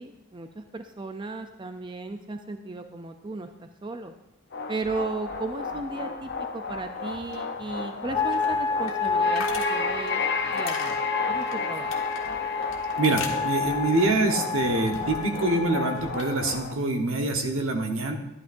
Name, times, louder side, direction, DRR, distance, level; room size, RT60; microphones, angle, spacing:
voice 1, 0.0-4.1 4.7-10.2 10.5-11.0 11.3-11.9, right 3 dB, 25° right, 7 dB, 0.4 m, -35 dB
sound 1, 4.5-16.8, left 4 dB, 55° left, 0.8 m, -33 dB
sound 2, 7.0-15.5 15.8-16.6, left 6 dB, 80° left, 1.4 m, -42 dB
sound 3, 8.1-16.1, left 4 dB, 20° left, 0.7 m, -29 dB
voice 2, 13.0-18.1, right 2 dB, 80° right, 4 dB, 1.2 m, -25 dB
11.5 x 11.5 x 2.6 m, 0.92 s
head